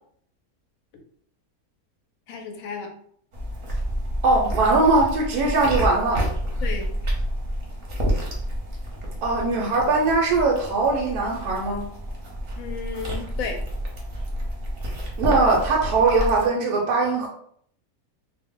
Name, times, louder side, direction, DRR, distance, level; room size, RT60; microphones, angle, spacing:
voice 1, 2.3-2.9 6.6-6.9 12.6-13.6, left 5 dB, 70° left, 4 dB, 0.9 m, -33 dB
sound 1, 3.3-16.5, equal, 50° right, 0.8 m, -29 dB
voice 2, 4.2-6.3 9.2-11.8 15.2-17.3, right 3 dB, 85° right, -1 dB, 1.1 m, -21 dB
2.6 x 2.1 x 3.5 m, 0.63 s
omnidirectional pair, 1.6 m